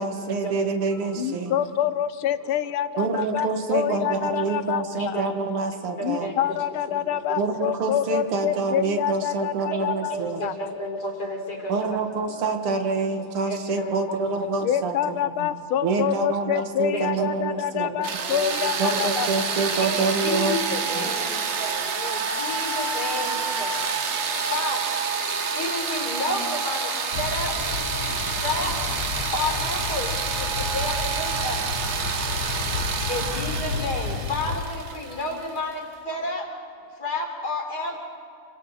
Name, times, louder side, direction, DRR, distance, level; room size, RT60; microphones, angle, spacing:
voice 1, 0.0-1.6 3.0-6.3 7.4-10.4 11.7-15.2 15.8-18.0 18.8-20.6 21.0-21.1, right 4 dB, 90° right, 6 dB, 2.4 m, -27 dB
voice 2, 1.2-5.2 6.0-10.1 10.4-10.5 14.6-19.3, left 10 dB, 80° left, 13 dB, 1.6 m, -27 dB
voice 3, 6.0-6.6 6.9-7.0 7.3-7.5 9.7-12.0 13.5-14.4 15.2-15.5 16.9-17.3 18.3-18.9 19.8-24.1 24.5-24.9 25.5-27.5 28.4-28.7 29.3-31.7 33.1-36.5 37.0-38.0, left 2 dB, 45° left, 1 dB, 4.1 m, -31 dB
sound 1, 18.0-35.7, right 5 dB, 45° right, 0.9 m, -28 dB
sound 2, 27.1-34.6, left 5 dB, 60° left, 1.7 m, -32 dB
28.5 x 25.5 x 4.2 m, 2.4 s
omnidirectional pair, 2.3 m